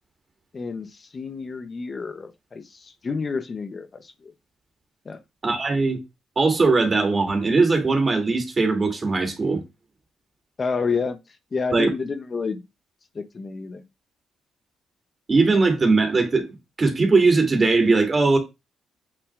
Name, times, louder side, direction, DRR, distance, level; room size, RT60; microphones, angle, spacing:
voice 1, 0.5-4.3 5.1-5.2 10.6-11.2 11.5-12.6 13.1-13.8, left 5 dB, 35° left, 0.8 m, -29 dB
voice 2, 5.4-6.0 6.4-9.6 11.7-11.9 15.3-16.5 16.8-18.4, right 3 dB, 30° right, 2.8 m, -20 dB
8.1 x 6.6 x 2.5 m
cardioid pair, 90°, 0 cm